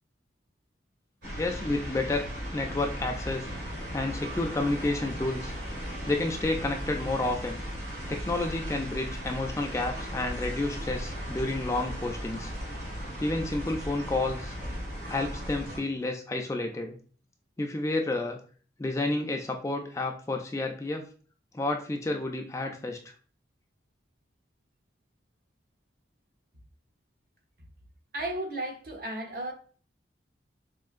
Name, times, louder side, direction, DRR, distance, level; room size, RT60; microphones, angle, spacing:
sound 1, 1.2-15.8, equal, 75° right, 1.7 m, -37 dB
voice 1, 1.4-3.5 3.9-5.5 6.0-7.6 8.1-12.5 13.2-14.5 15.1-17.0 17.6-18.4 18.8-21.0 21.5-23.0, left 2 dB, 15° left, 0.3 m, -30 dB
voice 2, 28.1-29.5, right 1 dB, 55° right, 0.9 m, -34 dB
4.4 x 2.5 x 2.4 m
head